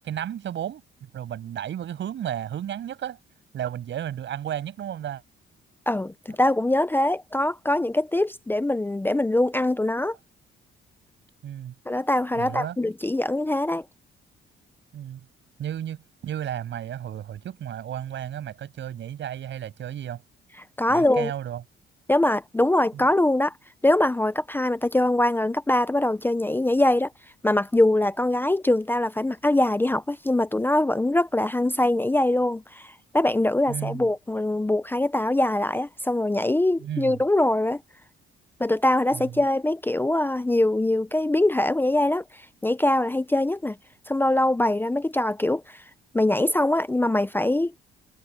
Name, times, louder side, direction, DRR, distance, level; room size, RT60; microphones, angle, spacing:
voice 1, 0.0-0.8 1.1-3.2 3.5-5.2 11.4-11.7 12.4-12.8 14.9-15.2 15.6-16.0 16.2-20.2 20.9-21.6 22.9-23.0 33.7-34.1 36.8-37.2 39.1-39.3, right 10 dB, 70° right, 6.7 m, -33 dB
voice 2, 5.9-10.2 11.9-13.9 20.8-21.3 22.1-23.5 23.8-27.1 27.4-37.8 38.6-43.8 44.1-45.8 46.1-47.7, left 1 dB, 10° left, 0.6 m, -23 dB
cardioid pair, 90°, 20 cm